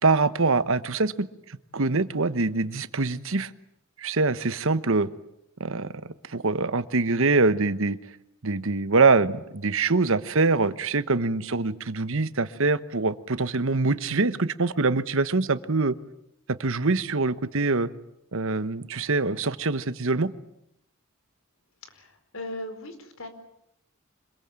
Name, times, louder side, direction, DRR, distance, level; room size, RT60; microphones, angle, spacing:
voice 1, 0.0-3.5 4.0-5.1 5.6-5.9 6.3-8.0 8.4-15.9 16.5-17.9 18.3-20.3, right 3 dB, 65° right, 14 dB, 1.1 m, -24 dB
voice 2, 21.9-23.3, left 1 dB, 70° left, 8 dB, 4.7 m, -38 dB
26.0 x 22.0 x 8.9 m, 0.78 s
head